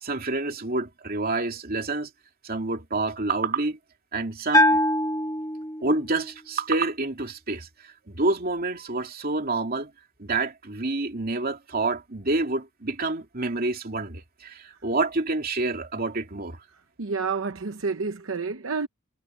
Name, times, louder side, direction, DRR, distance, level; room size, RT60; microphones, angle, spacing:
voice 1, 0.0-2.1 2.4-3.8 4.1-4.8 5.8-7.7 8.1-9.9 10.2-16.6, right 2 dB, 45° right, 2.8 m, -28 dB
Bell, 4.5-6.2, equal, 15° left, 1.8 m, -22 dB
voice 2, 17.0-18.9, right 4 dB, 70° right, 0.9 m, -29 dB
head